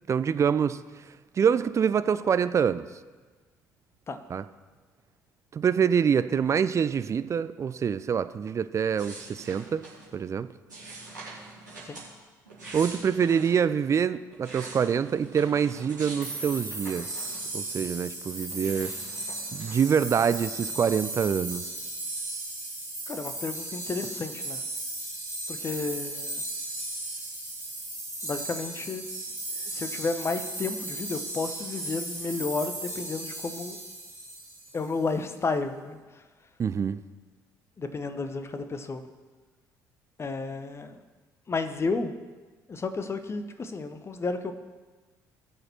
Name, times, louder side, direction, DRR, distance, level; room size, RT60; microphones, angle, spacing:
voice 1, 0.1-0.8 1.3-2.9 4.3-4.4 5.5-9.8 10.1-10.5 12.7-17.2 17.5-18.9 19.5-21.6 36.6-37.0, right 7 dB, 30° right, 13 dB, 0.5 m, -25 dB
sound 1, 9.0-10.1 10.7-12.1 12.4-13.6 14.1-17.7 18.0-19.8, right 2 dB, 85° right, 3.0 m, -44 dB
sound 2, 16.2-34.9, right 2 dB, 85° left, 2.6 m, -36 dB
voice 2, 23.1-24.6 25.5-26.4 28.2-29.0 29.6-33.8 34.7-36.2 37.8-39.1 40.2-41.0 41.5-42.1 42.7-44.5, left 3 dB, 25° left, 9 dB, 1.0 m, -32 dB
19.0 x 6.8 x 4.3 m, 1.3 s
figure-of-eight pair, 50°, 10 cm